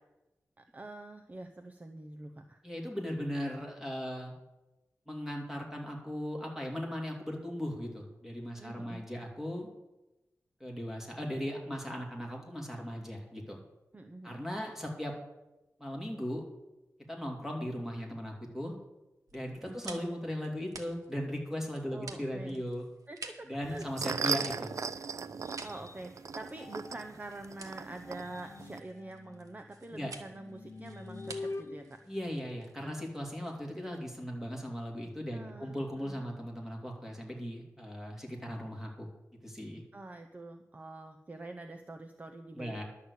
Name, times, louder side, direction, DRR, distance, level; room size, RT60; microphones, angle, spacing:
voice 1, 0.6-2.6 8.6-9.1 13.9-14.3 19.7-20.0 21.9-22.6 23.1-24.2 25.6-32.0 35.3-36.2 39.9-42.8, right 2 dB, 25° right, 6 dB, 0.7 m, -46 dB
voice 2, 2.6-4.3 5.1-9.7 10.6-13.6 14.2-15.1 15.8-16.4 17.1-18.7 19.3-22.8 23.5-24.7 29.9-30.1 32.1-39.1 39.4-39.8 42.6-42.8, equal, 5° right, 0 dB, 2.7 m, -38 dB
sound 1, 19.3-33.9, right 3 dB, 85° right, 1.3 m, -51 dB
sound 2, 23.6-28.8, right 6 dB, 65° right, 0.4 m, -38 dB
sound 3, 24.8-27.4 27.9-33.1, left 3 dB, 50° left, 0.8 m, -47 dB
11.5 x 6.6 x 8.2 m, 0.99 s
wide cardioid pair, 110°, 6 cm